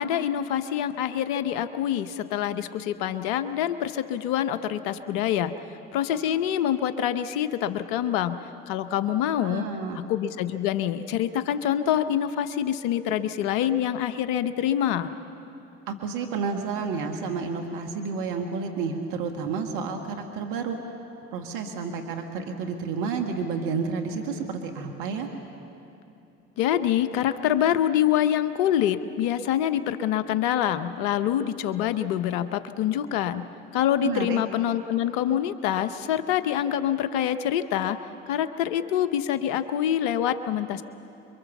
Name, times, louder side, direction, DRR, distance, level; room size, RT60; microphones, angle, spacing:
voice 1, 0.0-5.6 5.9-8.4 8.7-9.7 9.9-15.1 26.6-33.4 33.7-38.0 38.3-40.8, left 10 dB, 85° left, 11 dB, 0.9 m, -26 dB
voice 2, 9.4-10.0 15.9-20.8 21.3-25.3 34.0-34.4, right 5 dB, 80° right, 4 dB, 1.7 m, -30 dB
27.0 x 23.0 x 7.2 m, 2.8 s
hypercardioid pair, 60°, 33 cm